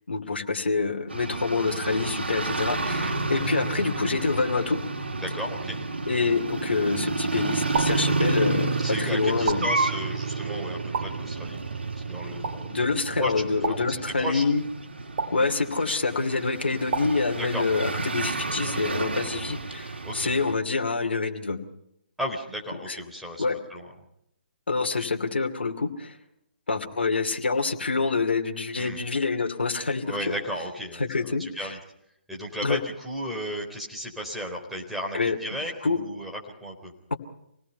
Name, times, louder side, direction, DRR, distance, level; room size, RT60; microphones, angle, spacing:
voice 1, 0.1-4.8 6.1-9.6 12.7-14.6 15.3-21.6 22.9-23.0 23.4-23.6 24.7-26.2 26.7-30.3 31.0-31.7 32.6-32.8 35.1-35.4 35.8-36.0, left 4 dB, 70° left, 4 dB, 2.6 m, -26 dB
sound 1, 1.1-20.5, right 3 dB, 70° right, 3.4 m, -30 dB
voice 2, 5.2-5.8 8.8-11.7 12.0-12.7 13.2-13.8 14.2-14.4 17.4-17.7 20.0-20.3 22.2-23.4 23.7-23.9 28.8-29.0 30.0-31.8 32.3-36.9, equal, ahead, -2 dB, 4.2 m, -34 dB
sound 2, 7.7-8.1 9.5-9.9 10.9-11.3 12.4-12.7 13.6-14.0 15.2-15.5 16.9-17.3, right 4 dB, 45° right, 2.4 m, -31 dB
26.5 x 19.0 x 5.6 m, 0.76 s
figure-of-eight pair, 135°, 6 cm